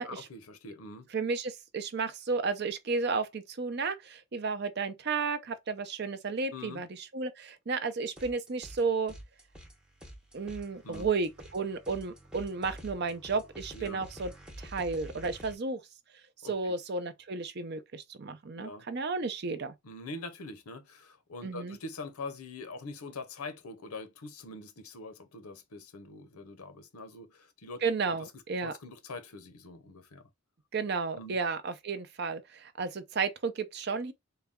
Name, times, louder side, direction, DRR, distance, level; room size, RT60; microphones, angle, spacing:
voice 1, 0.0-1.1 6.5-6.8 10.8-11.1 13.7-14.0 16.4-16.7 18.5-18.9 19.8-27.8 28.1-28.2 28.6-30.2 31.2-31.4, left 3 dB, 85° left, 0.7 m, -44 dB
voice 2, 1.1-9.1 10.3-14.3 14.6-15.8 16.4-19.7 21.4-21.8 27.8-28.7 30.7-34.1, right 4 dB, 50° right, 0.5 m, -33 dB
sound 1, 8.2-8.8 9.1-15.5, equal, 5° right, 0.6 m, -48 dB
3.9 x 2.2 x 3.5 m
head